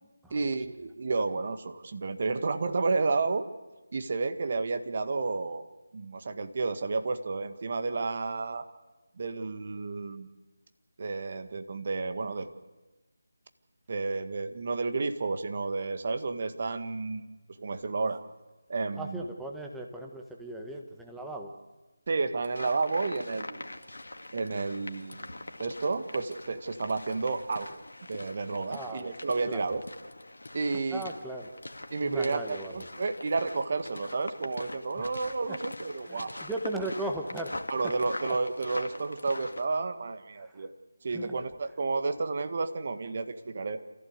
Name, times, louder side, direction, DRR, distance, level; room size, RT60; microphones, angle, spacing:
voice 1, 0.3-3.4 3.9-5.6 5.9-8.6 9.2-10.3 11.0-12.5 13.9-17.2 17.6-18.2 18.7-19.2 22.1-23.8 24.3-27.7 28.1-29.8 30.5-31.1 31.9-36.4 37.7-40.7 41.0-43.8, right 3 dB, 40° right, 9 dB, 1.7 m, -31 dB
voice 2, 19.0-21.5 28.7-29.1 29.5-29.7 30.9-31.5 32.0-32.8 35.0-35.1 35.5-35.6 36.0-37.6 40.4-40.7 41.1-41.3, right 2 dB, ahead, 0 dB, 1.6 m, -37 dB
sound 1, 22.4-39.6, left 2 dB, 70° left, 2.1 m, -43 dB
28.0 x 15.0 x 8.2 m, 1.2 s
figure-of-eight pair, 160°, 0 cm